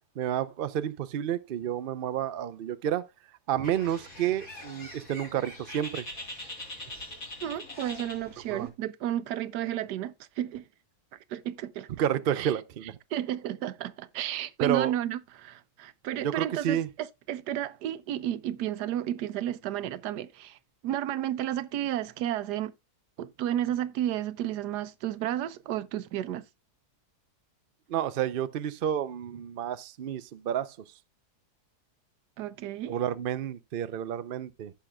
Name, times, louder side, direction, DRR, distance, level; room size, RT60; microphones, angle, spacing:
voice 1, 0.2-3.0 3.5-6.0 8.5-8.7 12.0-12.9 14.6-14.9 16.2-16.9 27.9-30.8 32.9-34.7, right 10 dB, 70° right, 0.5 m, -30 dB
Bird, 3.6-8.7, left 1 dB, 60° left, 4.1 m, -43 dB
voice 2, 7.4-10.6 11.3-11.9 12.4-12.5 13.1-20.6 20.8-22.7 23.2-26.4 32.4-33.0, right 12 dB, 85° right, 1.2 m, -32 dB
15.5 x 5.9 x 2.3 m
omnidirectional pair, 1.7 m